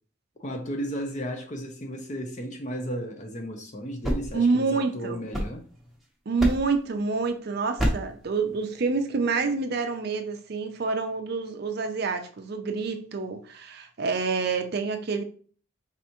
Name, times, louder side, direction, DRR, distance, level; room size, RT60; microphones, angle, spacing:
voice 1, 0.4-5.6, equal, 35° left, 0.7 m, -34 dB
sound 1, 3.8-6.0 6.4-6.9 7.8-8.2, equal, ahead, 0.8 m, -29 dB
voice 2, 4.3-5.2 6.3-15.2, right 4 dB, 50° right, 0.5 m, -27 dB
4.1 x 3.3 x 2.9 m
head